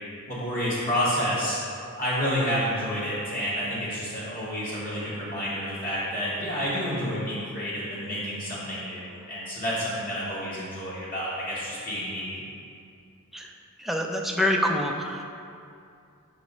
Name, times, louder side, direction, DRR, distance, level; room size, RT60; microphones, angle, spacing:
voice 1, 0.3-1.6 2.0-12.4, equal, 40° left, -9 dB, 1.3 m, -29 dB
voice 2, 13.8-15.2, left 1 dB, ahead, 1 dB, 0.3 m, -26 dB
5.7 x 3.1 x 5.3 m, 2.5 s
head